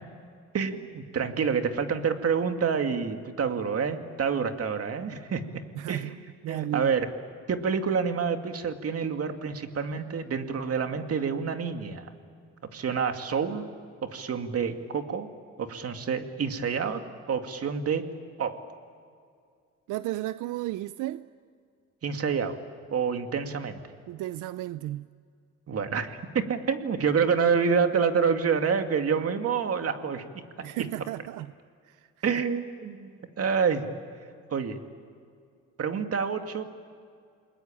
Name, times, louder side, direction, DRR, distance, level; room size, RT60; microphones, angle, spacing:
voice 1, 0.5-5.6 5.9-6.1 6.5-7.1 7.5-12.1 12.7-13.7 14.0-15.3 15.6-17.0 17.3-18.1 18.4-18.6 22.0-22.6 22.9-23.8 25.7-30.4 32.2-33.9 34.5-34.8 35.8-36.6, right 6 dB, 50° right, 2.4 m, -28 dB
voice 2, 5.7-6.1 6.4-6.9 19.9-21.3 24.1-25.1 30.6-31.5 31.8-32.1, right 15 dB, 90° right, 0.6 m, -33 dB
29.0 x 21.0 x 8.8 m
cardioid pair, 90°, 30 cm